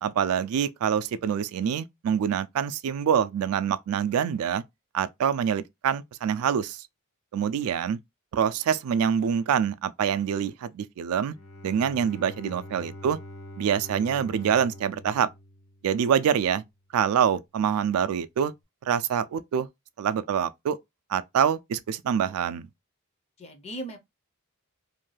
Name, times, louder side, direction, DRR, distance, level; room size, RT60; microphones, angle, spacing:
voice 1, 0.0-4.6 4.9-6.8 7.3-8.0 8.3-11.3 11.6-13.2 13.6-15.3 15.8-16.6 16.9-18.5 18.8-19.7 20.0-20.8 21.1-22.7, right 8 dB, 80° right, 0.3 m, -25 dB
Bowed string instrument, 11.2-16.2, left 1 dB, 65° left, 0.7 m, -44 dB
voice 2, 23.4-24.0, right 1 dB, 30° left, 0.5 m, -39 dB
2.6 x 2.2 x 3.1 m
head